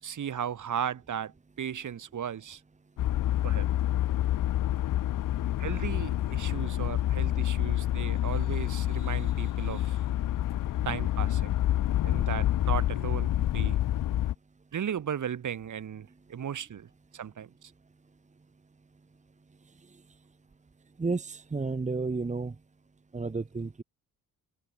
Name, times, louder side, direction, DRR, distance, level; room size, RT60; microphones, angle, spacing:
voice 1, 0.0-2.6 3.4-3.7 5.6-10.0 10.9-11.5 12.0-13.8 14.7-17.7, right 8 dB, 55° right, 5.3 m, -36 dB
sound 1, 3.0-14.3, left 13 dB, 60° left, 0.9 m, -28 dB
voice 2, 21.0-22.5 23.1-23.8, right 3 dB, 20° right, 1.7 m, -31 dB
open air
cardioid pair, 115°, 37 cm